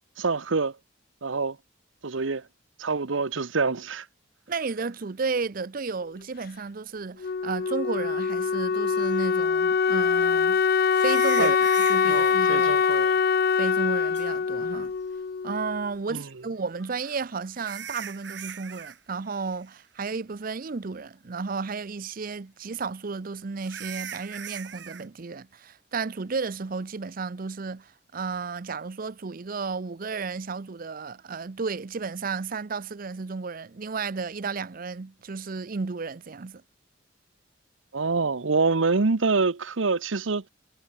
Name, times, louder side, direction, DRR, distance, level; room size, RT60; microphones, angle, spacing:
voice 1, 0.2-0.7 1.2-1.6 2.0-2.4 2.8-4.1 11.4-11.5 12.1-13.1 16.1-16.2 37.9-40.4, right 4 dB, 80° right, 0.9 m, -26 dB
voice 2, 4.5-10.6 10.9-12.8 13.6-14.9 15.4-36.6, right 4 dB, 45° right, 0.6 m, -33 dB
Wind instrument woodwind instrument, 7.2-15.9, left 6 dB, 50° left, 0.4 m, -23 dB
sound 1, 9.0-9.1 10.9-12.4 14.1-14.2 16.8-19.0 19.2-19.6 20.0-20.1 20.7-20.8 23.6-25.1, right 8 dB, 60° right, 2.4 m, -39 dB
head